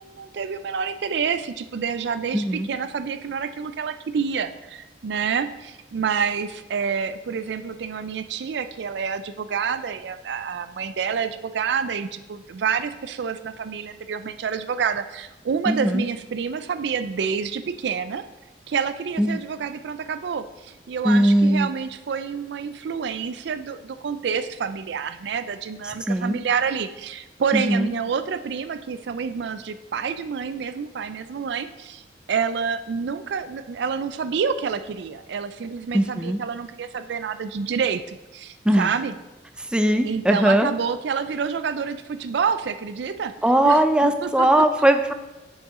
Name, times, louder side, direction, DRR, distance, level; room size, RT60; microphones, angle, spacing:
voice 1, 0.0-18.3 18.7-32.0 32.3-39.1 40.0-43.3 43.6-44.7, right 6 dB, 70° right, 11 dB, 0.4 m, -28 dB
voice 2, 2.3-2.7 15.7-16.1 19.2-19.4 21.0-21.7 26.1-26.4 27.5-27.9 35.9-36.4 38.7-38.9 39.7-40.7 43.4-45.1, right 1 dB, 5° right, 7 dB, 0.4 m, -19 dB
7.0 x 6.4 x 3.7 m, 1.0 s
head